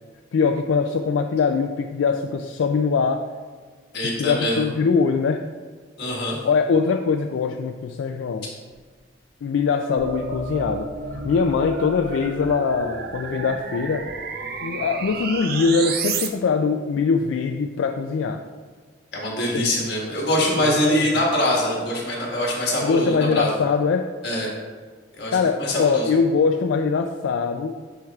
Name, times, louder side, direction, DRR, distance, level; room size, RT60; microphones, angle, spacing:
voice 1, 0.3-3.2 4.2-5.4 6.4-8.5 9.4-14.1 14.6-18.4 19.5-19.7 20.6-21.1 22.8-24.0 25.3-27.7, left 5 dB, 80° left, 4 dB, 0.3 m, -22 dB
voice 2, 3.9-4.6 6.0-6.4 19.1-23.5 24.2-24.5 25.2-26.1, left 1 dB, 55° left, -3 dB, 1.7 m, -23 dB
sound 1, 10.0-16.3, right 4 dB, 50° right, 0.5 m, -31 dB
10.0 x 4.5 x 2.4 m, 1.5 s
head